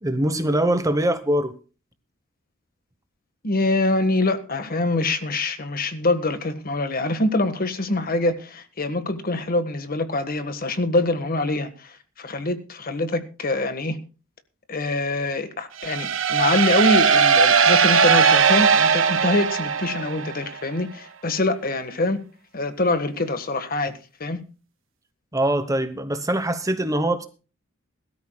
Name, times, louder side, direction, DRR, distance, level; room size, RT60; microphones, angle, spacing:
voice 1, 0.0-1.5 25.3-27.3, right 1 dB, 15° right, 1.0 m, -23 dB
voice 2, 3.4-14.0 14.7-22.2 22.5-24.4, left 2 dB, 45° left, 1.5 m, -24 dB
sound 1, 15.8-20.5, right 6 dB, 65° right, 1.5 m, -18 dB
21.5 x 13.0 x 2.3 m
head